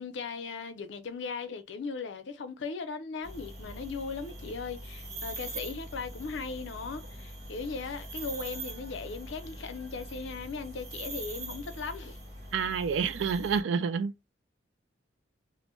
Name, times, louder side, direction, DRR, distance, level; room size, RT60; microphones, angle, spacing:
voice 1, 0.0-12.2, left 4 dB, 80° left, 0.5 m, -38 dB
sound 1, 3.2-13.6, right 1 dB, 40° right, 1.1 m, -42 dB
voice 2, 12.5-14.3, right 6 dB, 90° right, 0.4 m, -29 dB
2.5 x 2.1 x 3.0 m
head